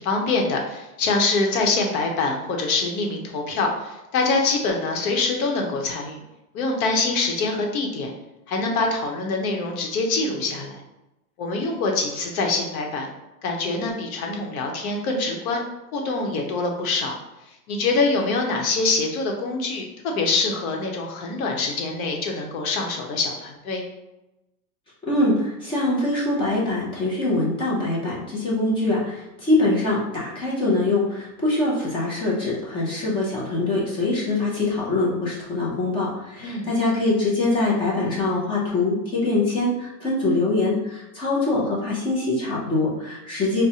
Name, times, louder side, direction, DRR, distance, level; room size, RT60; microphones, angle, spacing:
voice 1, 0.0-6.2 6.5-8.1 8.5-10.8 11.4-13.1 13.4-15.6 15.9-17.2 17.7-23.8 36.4-36.7, left 3 dB, 65° left, 2 dB, 0.9 m, -24 dB
voice 2, 25.1-43.6, left 2 dB, 10° left, -5 dB, 0.5 m, -23 dB
4.7 x 2.1 x 2.8 m, 0.97 s
supercardioid pair, 155°, 46 cm